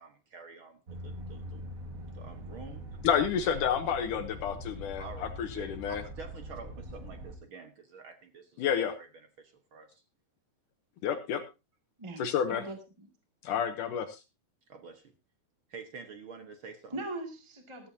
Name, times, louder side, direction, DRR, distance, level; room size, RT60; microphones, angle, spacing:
voice 1, 0.0-1.6 2.1-2.8 5.0-9.1 9.4-10.0 12.4-12.5 14.7-15.1 15.7-17.0, right 5 dB, 65° right, 1.3 m, -48 dB
sound 1, 0.9-7.4, equal, 40° right, 1.3 m, -43 dB
voice 2, 3.0-6.0 8.6-8.9 11.0-11.4 12.2-12.6 13.4-14.2, left 8 dB, 70° left, 2.2 m, -30 dB
voice 3, 12.0-13.1 16.9-17.9, right 2 dB, 10° right, 1.4 m, -40 dB
14.5 x 14.0 x 2.8 m
omnidirectional pair, 4.1 m